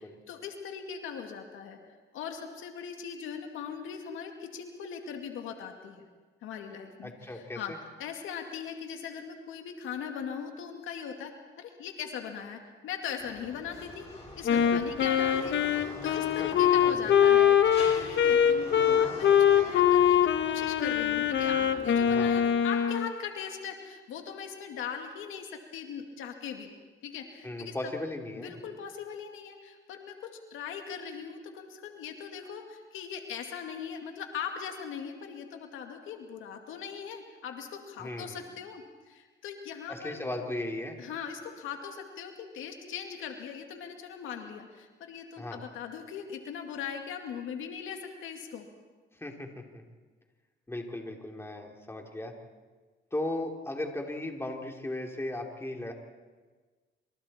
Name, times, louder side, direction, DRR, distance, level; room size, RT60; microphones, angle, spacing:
voice 1, 0.0-1.8 2.1-6.1 6.4-7.7 8.0-11.3 11.6-26.7 27.0-27.9 28.4-40.3 41.0-48.7, left 7 dB, 85° left, 4 dB, 2.3 m, -40 dB
voice 2, 7.0-7.8 14.7-14.8 16.4-16.5 16.8-17.2 22.1-22.4 27.4-28.6 38.0-38.4 39.9-41.0 45.4-45.6 49.2-49.8 50.7-52.3 53.1-55.9, left 1 dB, 10° left, 2 dB, 3.4 m, -36 dB
sound 1, 13.2-22.4, left 2 dB, 30° left, 7.0 m, -44 dB
Wind instrument woodwind instrument, 14.5-23.1, left 9 dB, 65° left, 1.4 m, -23 dB
27.0 x 26.5 x 4.4 m, 1.4 s
cardioid pair, 90°, 20 cm